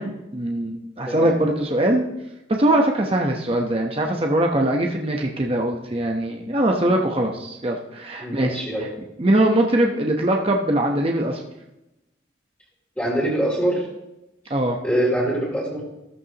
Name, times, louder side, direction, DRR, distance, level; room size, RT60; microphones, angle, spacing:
voice 1, 0.0-2.0 2.5-8.9 9.2-11.4 14.5-14.8, right 1 dB, 30° right, 1 dB, 1.0 m, -22 dB
voice 2, 8.2-8.9 13.0-13.8 14.8-15.8, right 1 dB, 10° left, -7 dB, 2.8 m, -24 dB
14.0 x 13.5 x 2.9 m, 0.94 s
head